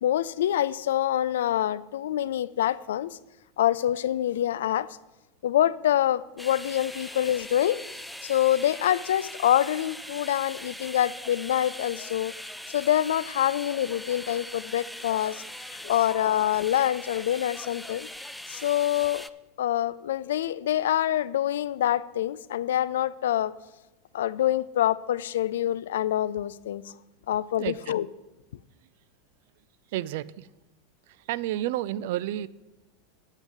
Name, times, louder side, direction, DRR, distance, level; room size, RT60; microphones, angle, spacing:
voice 1, 0.0-3.2 3.6-4.9 5.4-7.8 8.2-12.3 12.7-15.4 15.8-18.1 18.5-19.3 19.6-23.5 24.1-26.9 27.3-28.1, left 12 dB, 75° left, 0.3 m, -26 dB
sound 1, 6.4-19.3, left 1 dB, ahead, 0.4 m, -41 dB
voice 2, 27.6-27.9 29.9-30.5 31.1-32.5, right 13 dB, 65° right, 0.4 m, -31 dB
9.0 x 7.9 x 5.4 m
hypercardioid pair, 95°, 0 cm